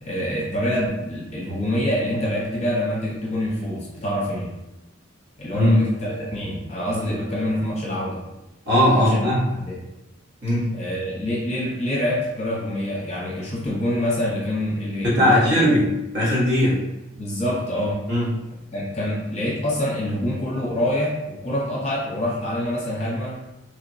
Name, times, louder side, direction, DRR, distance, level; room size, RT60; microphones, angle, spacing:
voice 1, 0.0-4.5 5.4-8.2 8.9-9.2 9.6-9.8 10.7-15.4 15.7-15.8 17.2-18.0 18.7-23.4, left 1 dB, 35° left, -6 dB, 0.7 m, -26 dB
voice 2, 8.6-9.4 10.4-10.7 15.0-16.8 18.1-18.3, equal, 55° right, -8 dB, 1.1 m, -19 dB
3.2 x 2.2 x 2.5 m, 0.95 s
head